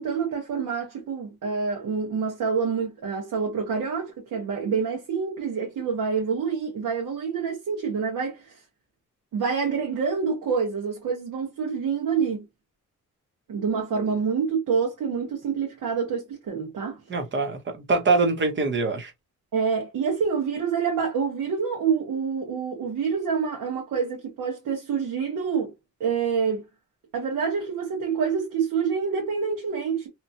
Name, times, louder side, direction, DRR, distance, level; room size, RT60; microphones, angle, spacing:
voice 1, 0.0-8.6 9.3-12.5 13.5-17.0 19.5-25.7 26.0-26.6 27.1-30.1, right 6 dB, 85° right, 1.2 m, -27 dB
voice 2, 17.1-19.1, right 3 dB, 35° right, 0.9 m, -24 dB
2.9 x 2.3 x 2.7 m
wide cardioid pair, 165°, 31 cm